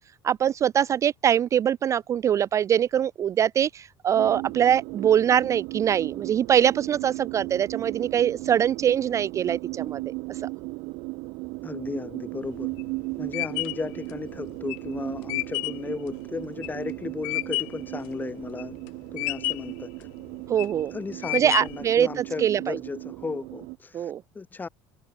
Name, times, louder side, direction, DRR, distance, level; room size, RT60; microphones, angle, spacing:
voice 1, 0.2-10.5 20.5-20.9 21.3-22.8 23.9-24.2, right 9 dB, 30° right, 0.3 m, -23 dB
sound 1, 4.2-23.8, right 25 dB, 75° right, 2.8 m, -36 dB
voice 2, 11.6-12.7 13.2-18.8 19.1-20.1 20.9-24.7, left 4 dB, 20° left, 4.6 m, -35 dB
sound 2, 12.4-17.9 18.3-18.9 19.2-19.8 20.3-20.8 21.2-21.9, left 40 dB or more, 85° left, 1.1 m, -31 dB
cardioid pair, 130°, 10 cm